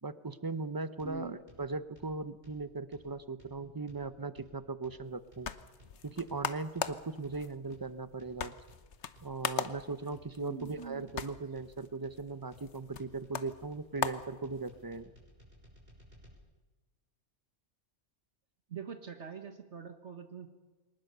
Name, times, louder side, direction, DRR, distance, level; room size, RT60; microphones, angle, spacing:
voice 1, 0.0-5.5 6.0-8.5 9.2-15.1, right 3 dB, 20° right, 12 dB, 0.7 m, -39 dB
sound 1, 1.0-16.3, equal, 50° right, 5.8 m, -60 dB
voice 2, 1.0-1.4 10.4-11.1 18.7-20.5, right 5 dB, 70° right, 6 dB, 1.7 m, -44 dB
sound 2, 5.0-15.0, left 7 dB, 70° left, 1.2 m, -41 dB
23.5 x 19.5 x 6.8 m, 1.2 s
omnidirectional pair, 1.2 m